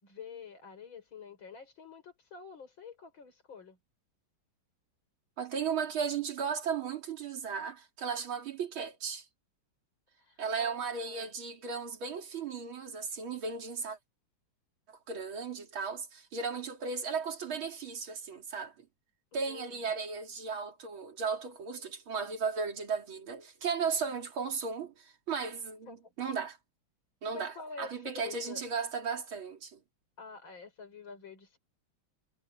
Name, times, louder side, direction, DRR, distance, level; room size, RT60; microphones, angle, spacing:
voice 1, 0.0-3.8 10.2-11.3 19.3-19.9 25.9-26.1 27.3-28.6 30.2-31.6, left 5 dB, 70° left, 6.1 m, -48 dB
voice 2, 5.4-9.2 10.4-14.0 14.9-18.9 19.3-26.6 27.2-29.8, right 5 dB, 80° right, 3.4 m, -35 dB
omnidirectional pair, 2.2 m